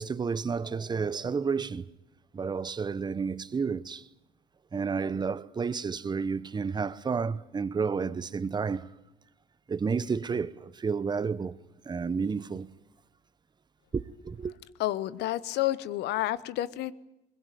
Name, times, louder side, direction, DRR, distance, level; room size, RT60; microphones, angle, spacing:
voice 1, 0.0-1.9 2.3-4.1 4.7-8.9 9.7-11.6 11.8-12.7 13.9-14.5, right 5 dB, 25° right, 1.0 m, -31 dB
voice 2, 14.8-16.9, left 15 dB, 80° left, 1.1 m, -30 dB
21.5 x 21.0 x 9.3 m
cardioid pair, 110°, 17 cm